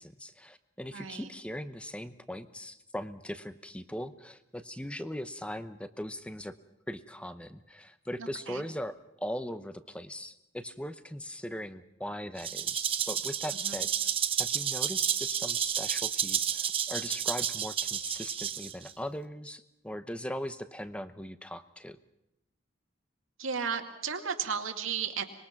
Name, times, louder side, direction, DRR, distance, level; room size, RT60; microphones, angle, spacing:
voice 1, 0.0-6.5 6.9-13.9 14.4-22.0, equal, 5° left, 11 dB, 0.8 m, -40 dB
voice 2, 0.9-1.3 8.2-8.6 13.6-13.8 23.4-25.2, right 6 dB, 85° right, 4 dB, 2.3 m, -34 dB
Rattle (instrument), 12.4-18.9, right 8 dB, 25° right, 0.9 m, -31 dB
25.0 x 21.5 x 5.9 m, 0.89 s
head